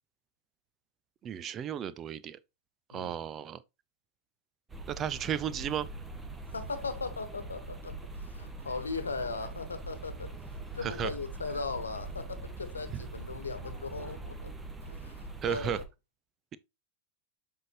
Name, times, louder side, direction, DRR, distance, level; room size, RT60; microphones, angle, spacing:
voice 1, 1.2-2.4 2.9-3.6 4.9-5.9 10.8-11.1 12.9-13.0 15.4-15.8, right 9 dB, 30° right, 0.6 m, -34 dB
sound 1, 4.7-15.9, right 2 dB, 15° right, 1.4 m, -43 dB
voice 2, 6.5-10.3 10.7-14.5 14.8-15.8, left 4 dB, 75° left, 1.2 m, -38 dB
7.7 x 5.6 x 3.0 m
figure-of-eight pair, 90°, 0 cm